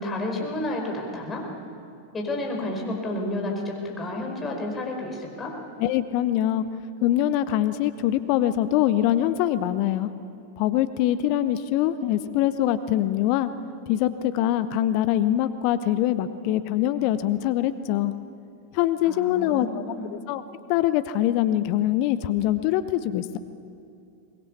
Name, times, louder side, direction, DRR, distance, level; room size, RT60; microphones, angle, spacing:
voice 1, 0.0-1.5 2.1-5.5 19.0-20.1, left 1 dB, 20° left, 0 dB, 5.1 m, -31 dB
voice 2, 5.8-6.6 7.0-10.1 10.6-13.5 13.9-18.1 18.7-19.8 20.1-20.4 20.7-23.4, left 12 dB, 45° left, 12 dB, 0.8 m, -23 dB
23.0 x 21.0 x 7.0 m, 2.5 s
figure-of-eight pair, 90°, 0 cm